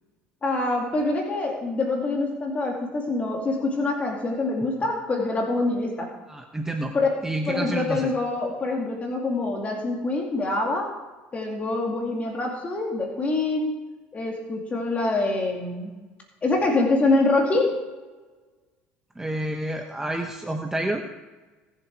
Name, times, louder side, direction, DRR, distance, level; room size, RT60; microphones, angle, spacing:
voice 1, 0.4-6.1 6.9-7.1 7.5-10.9 11.3-13.8 14.1-16.0 16.4-17.7, left 2 dB, 30° left, 0 dB, 2.5 m, -25 dB
voice 2, 6.3-6.9 7.2-8.1 19.2-21.0, right 1 dB, 10° right, 3 dB, 1.1 m, -29 dB
19.0 x 7.5 x 4.7 m, 1.2 s
supercardioid pair, 85°, 5 cm